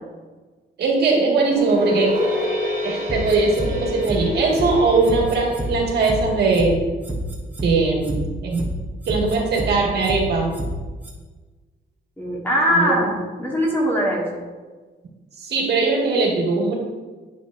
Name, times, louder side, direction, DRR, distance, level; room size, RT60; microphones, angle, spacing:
voice 1, 0.8-2.1 2.8-6.8 7.6-8.6 9.1-10.5 12.7-12.9 15.4-16.7, right 3 dB, 65° right, -1 dB, 1.7 m, -20 dB
sound 1, 1.5-6.8, left 1 dB, 40° right, 1.5 m, -28 dB
sound 2, 3.1-3.7 4.0-4.2 4.5-4.7 5.0-5.7 6.0-6.2 6.5-6.7 7.0-7.7 8.0-8.2 8.5-8.7 9.0-9.7 10.0-10.2 10.5-10.7 11.0-11.1, right 2 dB, 10° right, 1.1 m, -28 dB
voice 2, 12.2-14.3, equal, 10° left, -3 dB, 1.3 m, -21 dB
10.0 x 6.7 x 2.5 m, 1.3 s
wide cardioid pair, 180°, 18 cm